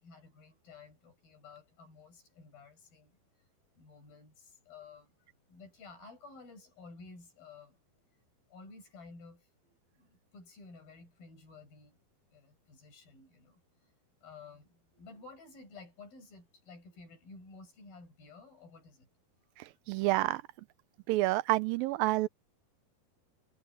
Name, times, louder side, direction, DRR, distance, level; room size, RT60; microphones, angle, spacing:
voice 1, 0.0-3.2 3.8-5.1 5.5-8.0 8.5-12.0 12.3-13.6 14.2-19.1 19.6-19.7, left 4 dB, 75° left, 9.3 m, -53 dB
voice 2, 19.6-20.4 21.1-22.3, right 18 dB, 80° right, 2.4 m, -29 dB
omnidirectional pair, 4.3 m